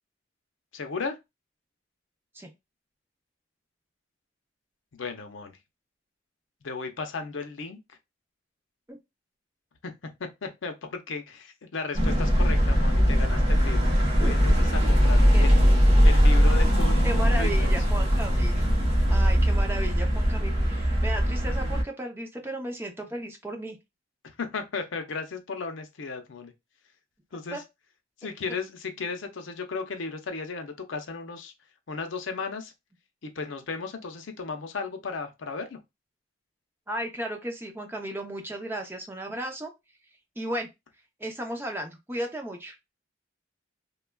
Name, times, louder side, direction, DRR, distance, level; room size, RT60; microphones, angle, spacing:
voice 1, 0.7-1.2 4.9-5.6 6.6-7.8 9.8-9.9 10.2-13.9 14.2-15.6 16.0-17.7 24.4-26.5 27.3-27.6 28.2-31.5 31.9-32.7 33.2-35.8, left 4 dB, 90° left, 0.6 m, -35 dB
sound 1, 11.9-21.8, equal, 30° right, 1.0 m, -21 dB
voice 2, 17.0-18.7 19.1-23.8 27.5-27.6 36.9-39.7 40.4-40.7 41.2-42.8, right 1 dB, 10° right, 0.6 m, -34 dB
3.2 x 2.3 x 2.2 m
head